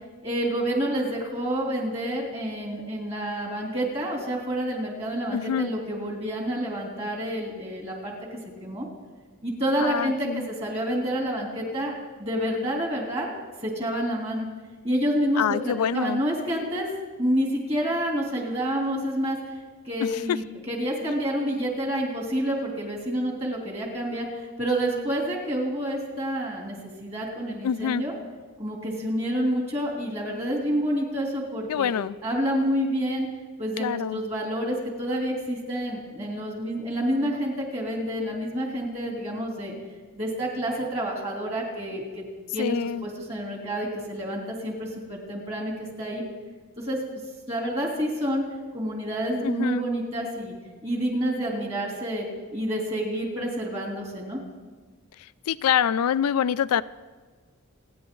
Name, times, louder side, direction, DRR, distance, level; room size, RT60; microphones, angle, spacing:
voice 1, 0.2-8.1 8.6-8.9 9.4-11.9 12.2-13.3 13.6-14.5 14.8-16.9 17.2-19.4 19.8-24.2 24.6-28.1 28.6-31.9 32.2-33.3 33.6-39.7 40.1-42.2 42.5-46.2 46.8-47.0 47.5-48.4 48.7-50.5 50.8-52.3 52.5-54.4, equal, 30° right, -1 dB, 3.1 m, -28 dB
voice 2, 5.3-5.7 9.8-10.5 15.4-16.2 20.0-20.4 21.1-21.2 27.6-28.0 31.7-32.1 33.8-34.2 42.6-43.0 49.4-49.9 55.5-56.8, left 8 dB, 85° left, 15 dB, 0.4 m, -26 dB
28.0 x 9.7 x 3.8 m, 1.4 s
head